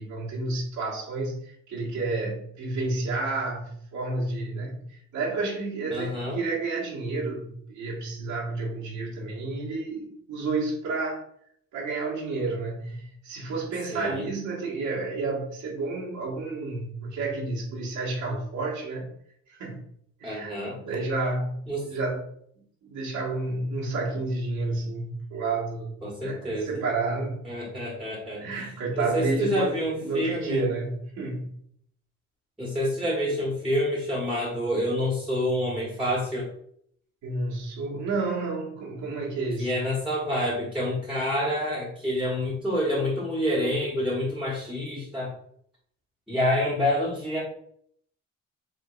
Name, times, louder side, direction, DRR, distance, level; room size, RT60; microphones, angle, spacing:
voice 1, 0.0-11.2 11.7-19.1 19.5-19.8 20.2-22.2 22.8-27.4 28.4-31.5 37.2-39.7, right 3 dB, 80° right, -4 dB, 1.7 m, -30 dB
voice 2, 5.9-6.4 13.9-14.2 20.2-20.8 21.7-21.8 26.0-26.8 27.4-28.7 28.9-30.7 32.6-36.5 39.6-45.3 46.3-47.4, equal, 5° right, -9 dB, 1.7 m, -27 dB
5.0 x 3.5 x 2.5 m, 0.66 s
cardioid pair, 90°, 30 cm